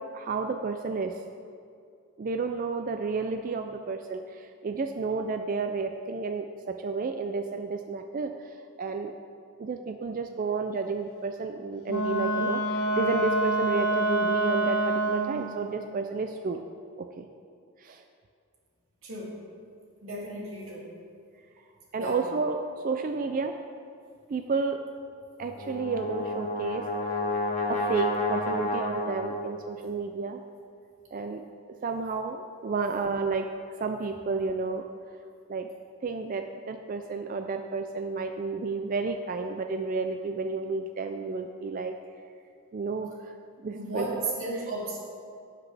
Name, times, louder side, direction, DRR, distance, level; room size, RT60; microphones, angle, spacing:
voice 1, 0.1-1.1 2.2-9.1 9.6-16.6 17.0-17.3 17.8-18.0 21.9-23.5 24.3-24.8 25.4-26.8 27.1-27.2 27.7-30.4 31.1-31.4 31.8-33.5 33.8-34.8 35.5-35.7 36.0-41.9 42.7-43.3 43.6-44.4, right 4 dB, 40° right, 6 dB, 0.3 m, -31 dB
Wind instrument woodwind instrument, 11.9-15.5, right 2 dB, 85° left, 1.1 m, -26 dB
voice 2, 19.0-19.4 20.0-20.9 22.0-22.2 43.7-45.0, right 2 dB, 65° right, -5 dB, 2.5 m, -34 dB
Brass instrument, 25.4-29.7, left 2 dB, 30° left, 1.0 m, -30 dB
16.0 x 5.9 x 3.4 m, 2.4 s
head